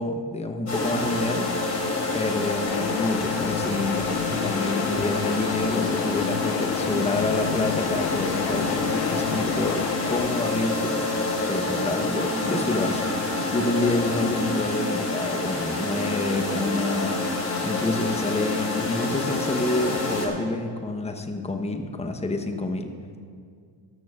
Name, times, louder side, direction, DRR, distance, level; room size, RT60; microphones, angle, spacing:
voice 1, 0.0-1.5 2.1-10.9 11.5-17.2 17.6-22.9, left 2 dB, 15° left, 5 dB, 0.9 m, -28 dB
sound 1, 0.7-20.3, left 2 dB, 35° left, 3.0 m, -27 dB
sound 2, 2.7-10.3, left 10 dB, 80° left, 0.6 m, -32 dB
17.5 x 13.0 x 2.4 m, 2.1 s
cardioid pair, 95°, 47 cm